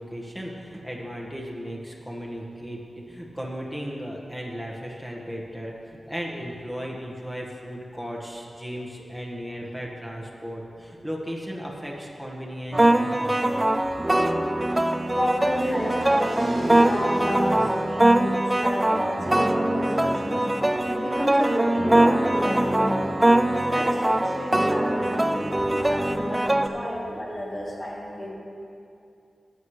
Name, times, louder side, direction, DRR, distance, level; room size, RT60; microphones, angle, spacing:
voice 1, 0.0-2.8 3.1-13.6, equal, 5° left, -2 dB, 1.6 m, -36 dB
sound 1, 12.7-26.7, right 1 dB, 15° right, 0.3 m, -22 dB
voice 2, 14.8-20.5 20.8-23.1 23.4-28.3, equal, 35° left, -6 dB, 2.9 m, -31 dB
sound 2, 15.5-21.5, right 2 dB, 55° right, 1.1 m, -42 dB
15.0 x 9.6 x 3.3 m, 2.5 s
wide cardioid pair, 110°, 0 cm